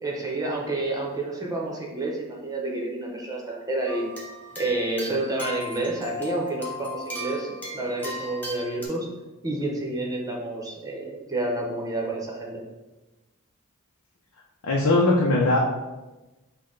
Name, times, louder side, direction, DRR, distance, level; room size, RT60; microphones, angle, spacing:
voice 1, 0.0-4.0 4.6-9.1 9.4-12.6, right 2 dB, 15° right, -2 dB, 0.8 m, -29 dB
sound 1, 3.9-8.9, left 1 dB, 10° left, 1.0 m, -36 dB
voice 2, 14.6-15.6, left 2 dB, 70° left, -2 dB, 0.6 m, -20 dB
5.7 x 2.2 x 3.8 m, 1.1 s
head